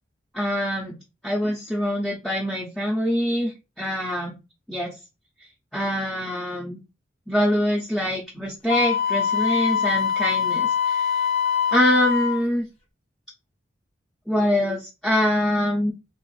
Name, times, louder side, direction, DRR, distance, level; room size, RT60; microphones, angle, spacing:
voice 1, 0.3-4.4 4.7-5.0 5.7-6.8 7.3-11.1 11.7-12.7 14.3-15.9, equal, 5° left, -4 dB, 0.5 m, -24 dB
Wind instrument woodwind instrument, 8.7-12.4, left 7 dB, 30° left, 0.7 m, -23 dB
3.1 x 3.0 x 2.3 m, 0.26 s
head